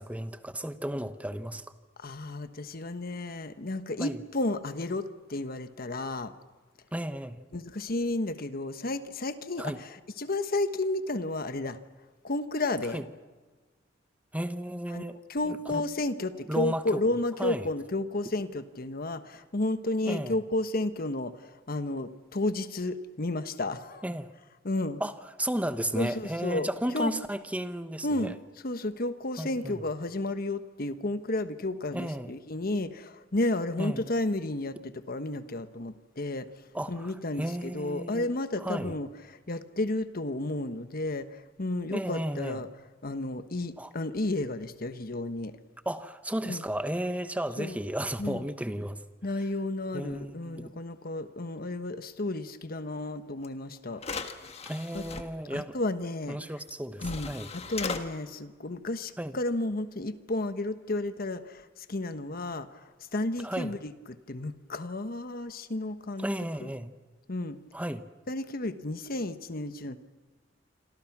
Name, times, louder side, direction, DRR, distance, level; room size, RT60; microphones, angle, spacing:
voice 1, 0.0-1.6 4.0-4.2 6.9-7.5 9.6-9.8 12.9-13.1 14.3-15.2 15.4-15.8 16.5-17.0 17.4-17.7 20.0-20.4 24.0-24.3 25.0-28.3 29.4-29.8 31.9-32.3 33.8-34.1 36.7-38.3 38.6-39.0 41.9-42.6 43.8-43.9 45.8-49.0 49.9-50.7 54.7-55.8 56.3-57.5 59.2-59.4 63.4-63.8 66.2-66.9 67.7-68.0, right 1 dB, 10° right, 1.0 m, -34 dB
voice 2, 2.0-6.3 7.5-11.8 12.2-13.0 14.9-15.0 15.3-24.0 24.6-25.0 25.9-26.7 26.9-27.1 28.0-28.3 28.6-36.5 36.9-39.1 39.5-42.7 43.0-45.6 46.4-46.6 47.6-47.8 48.2-48.4 49.2-54.0 54.9-55.0 55.5-56.4 57.0-62.8 63.1-66.3 66.6-66.7 67.3-67.6 68.3-70.0, left 2 dB, 50° left, 1.2 m, -32 dB
sound 1, 53.4-53.5 54.0-55.2 56.6-56.7 57.0-58.0, left 4 dB, 35° left, 1.6 m, -37 dB
27.0 x 26.5 x 6.1 m
head